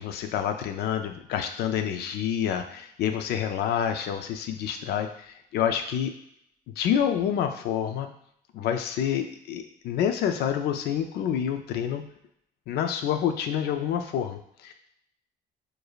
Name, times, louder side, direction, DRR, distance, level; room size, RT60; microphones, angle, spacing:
voice 1, 0.0-6.1 6.8-8.1 8.5-12.0 12.7-14.7, left 9 dB, 75° left, 7 dB, 0.5 m, -28 dB
4.7 x 2.6 x 2.4 m, 0.72 s
cardioid pair, 110°, 17 cm